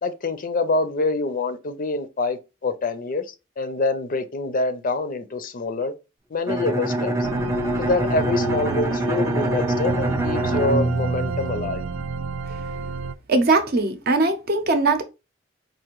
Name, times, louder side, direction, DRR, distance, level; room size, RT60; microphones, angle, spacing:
voice 1, 0.0-5.9 6.3-7.1 7.8-11.9, left 3 dB, 45° left, 0.5 m, -26 dB
Bowed string instrument, 6.5-12.1, right 1 dB, 15° right, 0.4 m, -25 dB
sound 1, 7.2-13.1, right 6 dB, 80° right, 0.3 m, -31 dB
voice 2, 13.3-15.0, right 3 dB, 50° right, 0.7 m, -20 dB
4.8 x 2.5 x 3.0 m
head